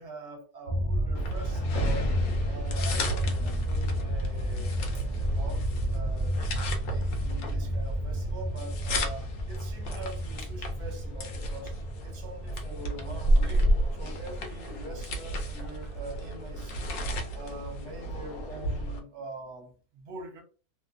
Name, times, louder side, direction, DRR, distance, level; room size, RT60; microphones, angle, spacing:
voice 1, 0.0-2.1 2.5-4.8 5.1-5.7 5.9-11.7 12.0-13.6 13.9-17.0 17.3-20.4, right 2 dB, 55° right, 1.0 m, -44 dB
sound 1, 0.7-16.6 16.9-17.0 17.3-17.4 17.7-17.9 18.2-18.4 18.8-18.9, equal, 90° right, 0.5 m, -32 dB
sound 2, 1.1-19.0, equal, 75° left, 1.1 m, -32 dB
2.8 x 2.1 x 2.4 m
omnidirectional pair, 1.6 m